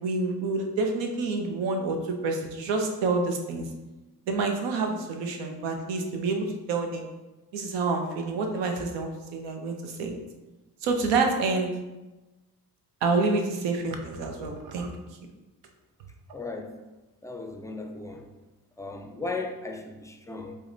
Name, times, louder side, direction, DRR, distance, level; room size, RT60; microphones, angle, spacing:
voice 1, 0.0-3.7 4.3-7.1 7.5-10.2 10.8-11.7 13.0-14.9, right 3 dB, 90° right, 4 dB, 0.6 m, -28 dB
voice 2, 16.3-16.8 17.2-18.3 18.8-20.6, left 3 dB, 10° left, 3 dB, 0.3 m, -36 dB
4.6 x 2.1 x 2.6 m, 1.1 s
supercardioid pair, 60°, 42 cm